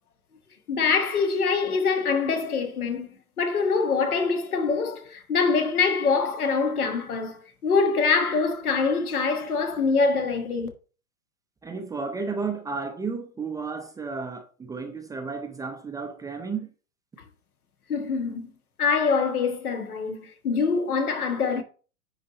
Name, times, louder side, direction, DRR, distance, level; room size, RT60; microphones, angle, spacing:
voice 1, 0.7-10.7 17.9-18.5 18.8-21.6, left 4 dB, 80° left, 1.6 m, -24 dB
voice 2, 11.6-16.7, right 4 dB, 10° right, 0.6 m, -33 dB
9.8 x 3.3 x 4.0 m
hypercardioid pair, 110°, 44 cm